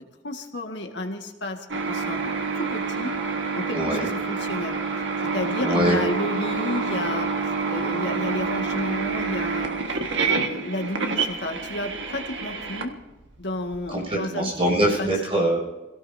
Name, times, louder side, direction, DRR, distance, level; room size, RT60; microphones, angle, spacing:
voice 1, 0.2-2.3 2.6-3.2 3.6-4.8 5.3-7.3 7.7-9.7 10.2-13.0 13.4-14.5 15.0-15.1, left 1 dB, 70° left, 3 dB, 1.8 m, -31 dB
sound 1, 1.7-13.8, right 4 dB, 75° right, 1.7 m, -27 dB
voice 2, 3.7-4.1 5.6-6.0 13.9-15.7, right 1 dB, 30° right, -3 dB, 6.7 m, -23 dB
29.0 x 17.5 x 2.8 m, 1.1 s
head